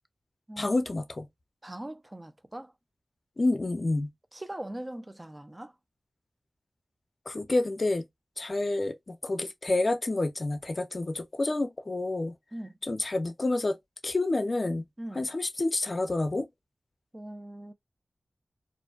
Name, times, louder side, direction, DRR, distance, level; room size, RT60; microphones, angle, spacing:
voice 1, 0.6-1.3 3.4-4.1 7.3-8.1 8.4-12.3 12.9-13.8 14.0-14.9 15.2-16.5, left 2 dB, 55° left, 0.5 m, -28 dB
voice 2, 1.6-2.7 4.3-5.7 12.5-12.8 15.0-15.3 17.1-17.7, right 1 dB, 25° right, 0.4 m, -41 dB
2.5 x 2.1 x 2.3 m
cardioid pair, 40°, 0 cm